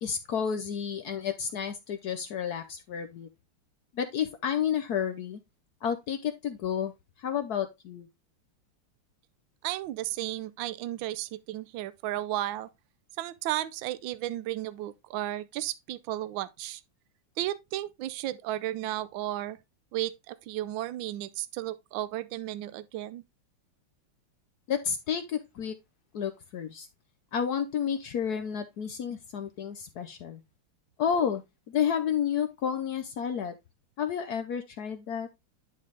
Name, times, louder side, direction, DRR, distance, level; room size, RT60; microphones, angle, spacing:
voice 1, 0.0-3.3 3.9-5.4 5.8-6.9 7.2-8.1 24.7-25.7 26.1-26.9 27.3-30.4 31.0-31.4 31.7-33.5 34.0-35.3, left 8 dB, 70° left, 0.9 m, -31 dB
voice 2, 9.6-12.7 13.2-16.8 17.4-19.6 19.9-23.2, right 14 dB, 75° right, 1.3 m, -34 dB
10.5 x 3.9 x 3.3 m
omnidirectional pair, 2.4 m